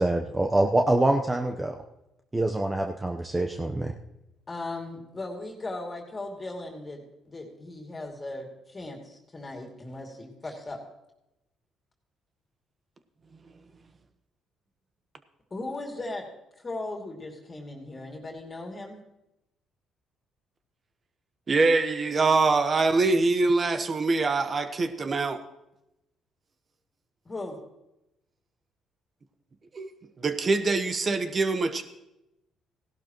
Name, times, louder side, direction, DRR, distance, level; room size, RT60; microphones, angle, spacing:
voice 1, 0.0-1.8 2.3-3.9, right 2 dB, 20° right, 3 dB, 0.9 m, -25 dB
voice 2, 4.5-10.8 15.5-16.3 16.6-19.0 27.2-27.6, left 2 dB, 30° left, 1 dB, 2.6 m, -37 dB
voice 3, 21.5-25.4 29.7-29.9 30.2-31.8, right 3 dB, 40° right, 9 dB, 1.2 m, -24 dB
16.5 x 12.0 x 3.0 m, 0.89 s
supercardioid pair, 65°, 0 cm